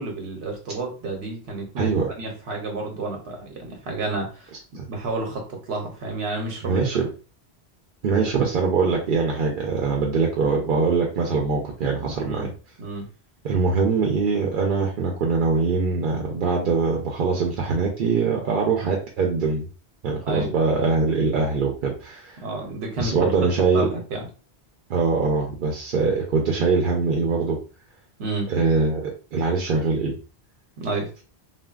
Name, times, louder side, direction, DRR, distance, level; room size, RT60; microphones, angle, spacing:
voice 1, 0.0-1.9 2.2-4.5 4.9-6.8 12.3-12.5 12.8-13.1 20.3-20.5 22.4-24.3 28.2-28.5 30.8-31.1, right 2 dB, 85° right, 1 dB, 1.0 m, -30 dB
voice 2, 1.8-2.1 4.7-4.8 6.6-7.1 8.0-12.5 13.4-19.7 20.0-22.4 23.0-23.9 24.9-27.6 28.5-30.2, right 4 dB, 60° right, 0 dB, 0.7 m, -23 dB
3.3 x 2.1 x 2.3 m, 0.35 s
omnidirectional pair, 1.1 m